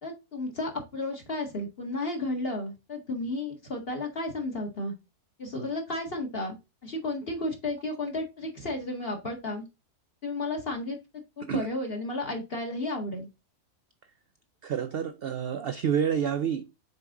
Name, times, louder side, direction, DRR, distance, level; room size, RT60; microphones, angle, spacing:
voice 1, 0.0-4.9 5.4-6.6 6.8-9.6 10.2-11.0 11.4-13.3, left 2 dB, 40° left, 1.9 m, -33 dB
voice 2, 14.6-16.7, right 8 dB, 70° right, 0.5 m, -28 dB
6.6 x 4.5 x 3.6 m
omnidirectional pair, 1.6 m